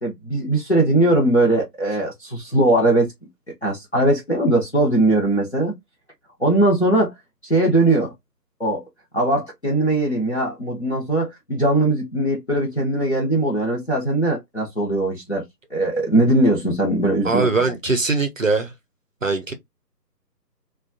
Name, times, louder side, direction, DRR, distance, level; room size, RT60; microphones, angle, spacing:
voice 1, 0.0-3.1 3.6-5.7 6.4-7.1 7.4-8.1 8.6-8.8 9.1-15.4 15.7-17.5, right 1 dB, 45° left, 0.6 m, -20 dB
voice 2, 17.2-18.7 19.2-19.5, right 3 dB, 55° right, 0.5 m, -21 dB
2.4 x 2.2 x 2.5 m
figure-of-eight pair, 175°, 50 cm